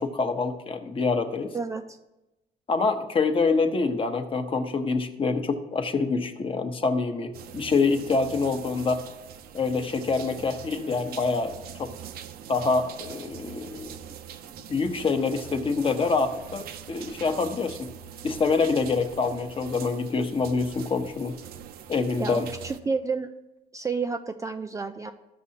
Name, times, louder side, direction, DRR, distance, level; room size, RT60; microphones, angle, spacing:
voice 1, 0.0-1.5 2.7-9.0 9.5-11.9 12.5-13.9 14.7-17.9 18.2-21.3 21.9-22.5, left 4 dB, 30° left, 7 dB, 0.9 m, -26 dB
voice 2, 1.5-2.0 22.2-23.3 23.7-25.1, right 4 dB, 20° right, 6 dB, 0.4 m, -30 dB
sound 1, 7.3-22.8, right 9 dB, 65° right, 0.6 m, -43 dB
14.0 x 6.2 x 2.8 m, 0.97 s
cardioid pair, 110°, 17 cm